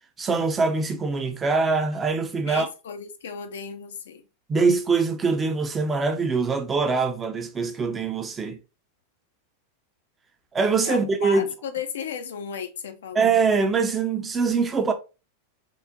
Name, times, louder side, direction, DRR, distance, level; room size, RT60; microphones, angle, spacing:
voice 1, 0.2-2.7 4.5-8.6 10.5-11.5 13.2-14.9, right 4 dB, 20° right, 0.5 m, -23 dB
voice 2, 2.5-4.2 10.8-13.3, left 6 dB, 60° left, 0.4 m, -34 dB
3.6 x 2.1 x 2.5 m
figure-of-eight pair, 90°, 0 cm